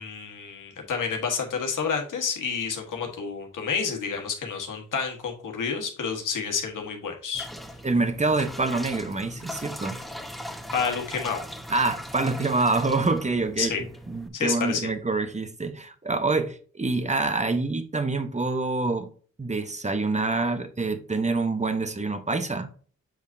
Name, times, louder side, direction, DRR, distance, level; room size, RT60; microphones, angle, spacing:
voice 1, 0.0-7.5 10.7-11.4 13.6-13.8 14.3-14.8, left 6 dB, 85° left, 1.5 m, -29 dB
sound 1, 7.3-14.3, equal, ahead, 1.3 m, -39 dB
voice 2, 7.8-10.0 11.7-13.7 14.1-19.1 19.4-22.7, right 3 dB, 20° right, 1.1 m, -26 dB
7.7 x 5.0 x 2.7 m
cardioid pair, 50°, 31 cm